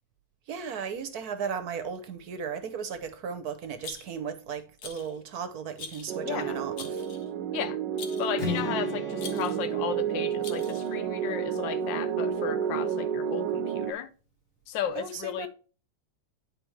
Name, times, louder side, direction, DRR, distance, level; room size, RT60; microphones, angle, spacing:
voice 1, 0.5-7.1 15.0-15.5, right 6 dB, 65° right, 1.2 m, -36 dB
Rattle, 3.8-4.3 4.8-5.2 5.8-6.2 6.8-7.3 8.0-8.4 9.2-9.7 10.4-11.0, left 5 dB, 65° left, 1.5 m, -43 dB
sound 1, 6.1-13.9, right 8 dB, 85° right, 1.3 m, -31 dB
voice 2, 6.2-6.6 7.5-7.8 8.2-14.1 14.7-15.5, left 9 dB, 85° left, 1.4 m, -34 dB
Strum, 8.4-12.5, left 3 dB, 45° left, 2.8 m, -39 dB
10.5 x 4.3 x 3.1 m
omnidirectional pair, 1.9 m